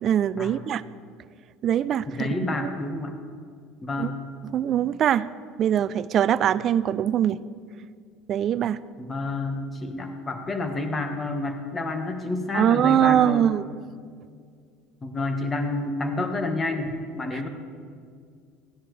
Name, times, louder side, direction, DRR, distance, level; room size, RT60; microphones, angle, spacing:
voice 1, 0.0-0.8 1.6-2.3 4.0-4.1 4.5-5.3 5.6-7.4 8.3-8.8 12.5-13.7, right 10 dB, 45° right, 18 dB, 0.3 m, -22 dB
voice 2, 2.1-3.1 3.8-4.2 9.0-13.4 15.0-17.5, left 2 dB, 25° left, 6 dB, 1.4 m, -29 dB
15.0 x 10.5 x 3.3 m, 2.2 s
supercardioid pair, 100°, 0 cm